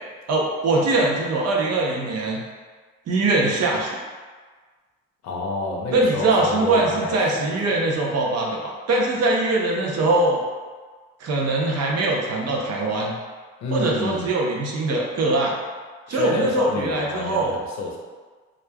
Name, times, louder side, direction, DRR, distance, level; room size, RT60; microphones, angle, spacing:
voice 1, 0.3-2.4 3.1-4.0 5.9-10.4 11.2-13.1 13.7-15.5 16.1-17.5, right 2 dB, 55° right, -2 dB, 0.6 m, -22 dB
voice 2, 5.2-7.2 7.5-7.7 13.6-14.3 16.1-18.0, left 2 dB, 65° left, -1 dB, 0.6 m, -29 dB
3.0 x 2.4 x 2.2 m, 1.4 s
cardioid pair, 90°, 30 cm